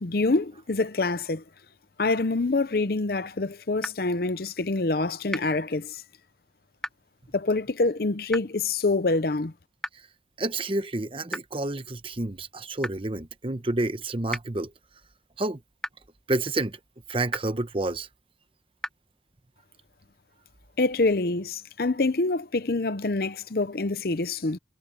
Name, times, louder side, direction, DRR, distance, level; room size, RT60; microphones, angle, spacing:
voice 1, 0.0-1.4 2.0-6.0 7.3-9.5 20.8-24.6, left 3 dB, 55° left, 0.7 m, -26 dB
sound 1, 3.8-3.9 5.3-5.4 6.8-6.9 8.3-8.4 9.8-9.9 11.3-11.4 12.8-12.9 14.3-14.4 15.8-15.9 17.3-17.4 18.8-18.9, left 1 dB, 5° left, 1.1 m, -31 dB
voice 2, 10.4-14.7 15.4-15.6 16.3-16.8 17.1-18.1, right 2 dB, 30° right, 0.9 m, -29 dB
head